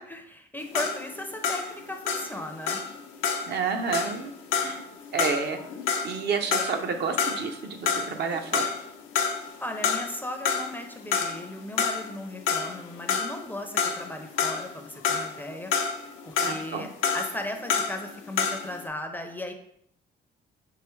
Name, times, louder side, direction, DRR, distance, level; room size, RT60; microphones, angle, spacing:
voice 1, 0.1-2.8 9.6-15.7 16.3-16.9 17.1-19.5, left 1 dB, 10° left, 4 dB, 0.5 m, -37 dB
sound 1, 0.6-7.6 7.9-8.9 9.1-10.2 10.4-18.8, left 6 dB, 90° left, 0.6 m, -28 dB
voice 2, 3.5-4.3 4.6-4.8 5.1-5.6 6.0-8.7 16.4-16.9, right 5 dB, 60° right, 5 dB, 0.6 m, -30 dB
4.7 x 2.9 x 3.1 m, 0.70 s
cardioid pair, 90°, 20 cm